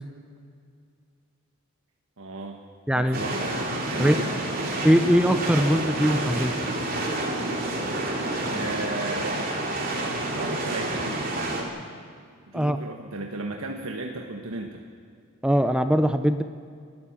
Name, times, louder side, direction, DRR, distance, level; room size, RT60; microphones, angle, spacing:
voice 1, 2.2-2.6 2.9-3.4 3.8-4.5 8.5-9.5 10.4-11.0 12.5-14.8, right 2 dB, 75° right, 2 dB, 1.4 m, -34 dB
voice 2, 2.9-3.2 4.0-4.2 4.8-6.5 12.5-12.8 15.4-16.4, equal, 5° right, 9 dB, 0.7 m, -21 dB
sound 1, 3.1-11.6, right 1 dB, 40° right, 3.1 m, -29 dB
29.0 x 13.0 x 7.3 m, 2.2 s
head